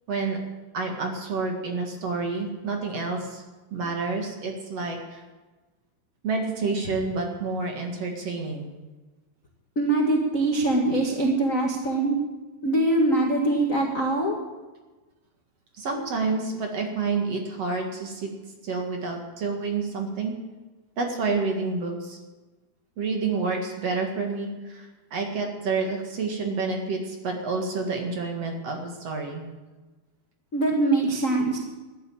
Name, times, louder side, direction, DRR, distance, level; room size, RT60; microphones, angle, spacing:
voice 1, 0.1-0.4 0.7-3.4 3.7-5.2 6.2-8.7 15.8-18.3 18.6-20.3 21.0-22.2 23.0-29.5, right 4 dB, 50° right, 2 dB, 2.5 m, -29 dB
voice 2, 9.7-12.1 12.6-14.3 30.5-31.6, right 2 dB, 50° left, 0 dB, 0.9 m, -23 dB
13.5 x 10.5 x 8.7 m, 1.2 s
omnidirectional pair, 4.4 m